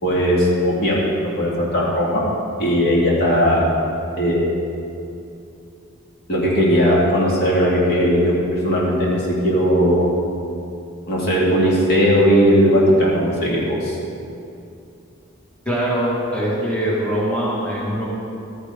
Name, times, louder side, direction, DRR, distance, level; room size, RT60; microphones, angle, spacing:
voice 1, 0.0-2.2 2.6-3.7 4.2-4.5 6.3-10.1 11.1-14.0, equal, 50° left, -5 dB, 2.1 m, -18 dB
voice 2, 15.7-18.0, right 1 dB, 5° left, -8 dB, 1.9 m, -22 dB
13.5 x 9.3 x 3.7 m, 2.6 s
head